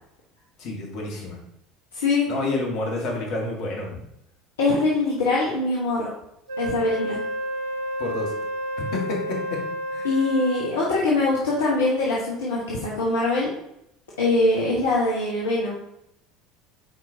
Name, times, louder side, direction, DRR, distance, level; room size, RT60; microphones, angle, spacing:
voice 1, 0.6-1.4 2.3-4.0 8.0-8.3 8.9-9.6 9.9-10.1, left 2 dB, 55° left, -1 dB, 1.7 m, -29 dB
voice 2, 1.9-2.3 4.6-6.1 6.6-7.2 10.0-13.5 14.2-15.7, left 2 dB, 70° left, -5 dB, 1.2 m, -23 dB
Wind instrument woodwind instrument, 6.5-10.9, equal, 75° right, 0.8 m, -30 dB
8.1 x 4.5 x 2.8 m, 0.79 s
figure-of-eight pair, 65°, 0 cm